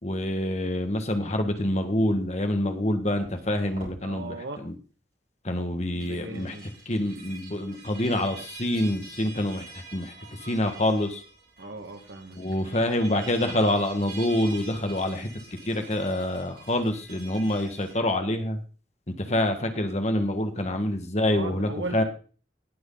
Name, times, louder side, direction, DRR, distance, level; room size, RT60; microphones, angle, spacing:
voice 1, 0.0-4.7 5.4-6.5 6.9-9.6 9.9-10.1 10.4-11.2 12.4-15.3 15.7-18.6 19.2-22.0, left 1 dB, 35° left, 6 dB, 1.5 m, -26 dB
sound 1, 3.2-4.0 5.8-17.9, right 4 dB, 45° right, 5.4 m, -46 dB
voice 2, 4.0-4.6 6.0-6.7 11.6-12.4 19.2-19.5 20.6-20.7 21.3-22.0, right 2 dB, 75° right, 5 dB, 1.8 m, -38 dB
18.0 x 6.3 x 3.9 m, 0.38 s
head